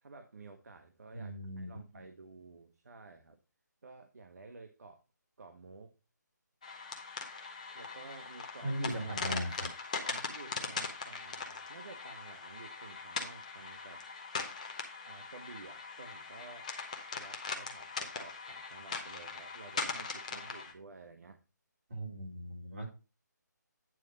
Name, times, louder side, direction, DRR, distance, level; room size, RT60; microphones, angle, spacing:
voice 1, 0.0-3.4 3.8-5.0 5.4-5.9 7.7-8.8 9.9-14.1 15.0-16.7 17.1-21.4, right 3 dB, 55° right, 7 dB, 0.9 m, -52 dB
voice 2, 1.1-2.0 8.6-9.7 21.9-22.9, right 1 dB, 40° right, -3 dB, 3.7 m, -38 dB
sound 1, 6.6-20.7, left 4 dB, 20° left, 0.8 m, -41 dB
9.1 x 4.0 x 5.3 m, 0.31 s
hypercardioid pair, 180°, 10 cm